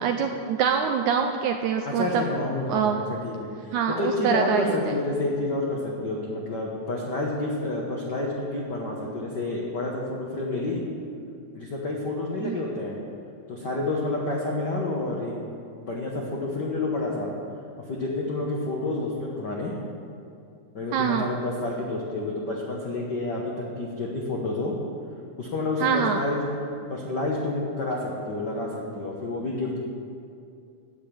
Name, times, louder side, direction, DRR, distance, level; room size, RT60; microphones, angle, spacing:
voice 1, 0.0-2.2 2.7-3.0 3.7-4.9 12.4-12.6 20.9-21.3 25.8-26.2, right 7 dB, 80° right, 5 dB, 1.8 m, -25 dB
voice 2, 1.9-10.8 11.5-13.0 13.5-15.3 15.7-17.3 17.9-19.8 20.7-24.7 25.4-26.4 26.9-29.8, left 2 dB, 65° left, -2 dB, 1.1 m, -29 dB
10.5 x 7.9 x 8.8 m, 2.5 s
omnidirectional pair, 3.8 m